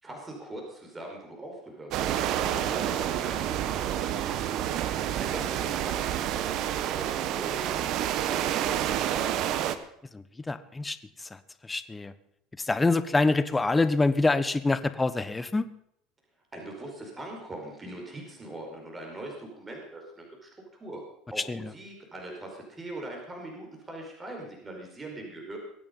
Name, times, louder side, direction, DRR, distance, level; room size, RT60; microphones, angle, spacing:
voice 1, 0.0-4.7 5.2-6.6 6.9-9.2 16.5-20.5 20.8-21.0 21.3-25.6, right 1 dB, 20° right, 1 dB, 5.1 m, -42 dB
sound 1, 1.9-9.8, right 11 dB, 60° right, 1.2 m, -29 dB
voice 2, 10.1-11.0 11.6-12.1 12.6-15.6 21.5-21.7, left 3 dB, 15° left, 13 dB, 1.1 m, -25 dB
22.5 x 8.8 x 5.5 m, 0.71 s
supercardioid pair, 100°, 0 cm